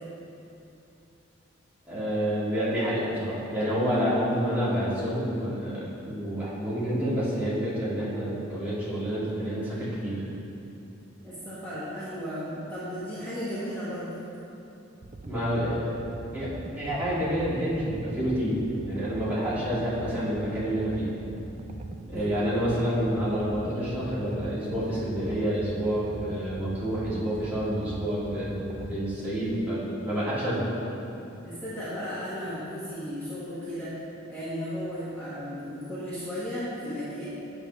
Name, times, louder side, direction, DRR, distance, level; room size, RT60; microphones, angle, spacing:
voice 1, 1.9-10.2 15.2-15.8 16.3-21.1 22.1-30.7, equal, 10° right, -11 dB, 1.8 m, -28 dB
voice 2, 11.2-14.1 22.0-22.6 31.4-34.0 34.3-37.3, equal, 10° left, -12 dB, 1.2 m, -35 dB
sound 1, 15.0-29.0, right 1 dB, 35° right, 0.4 m, -41 dB
8.8 x 6.6 x 3.1 m, 2.8 s
head